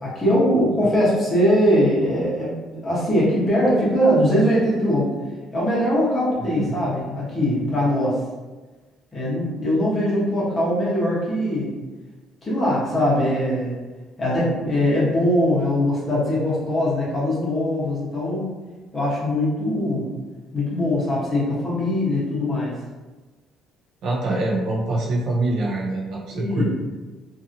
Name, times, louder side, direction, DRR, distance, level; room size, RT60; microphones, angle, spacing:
voice 1, 0.0-2.5 2.8-5.1 5.5-8.2 9.1-11.7 12.4-13.7 14.2-18.4 18.9-20.1 20.5-22.7 26.3-26.7, equal, 15° left, -8 dB, 0.9 m, -21 dB
voice 2, 6.4-6.8 9.5-9.6 24.0-26.7, right 2 dB, 55° right, -4 dB, 0.7 m, -25 dB
2.7 x 2.6 x 2.5 m, 1.3 s
cardioid pair, 180°, 0 cm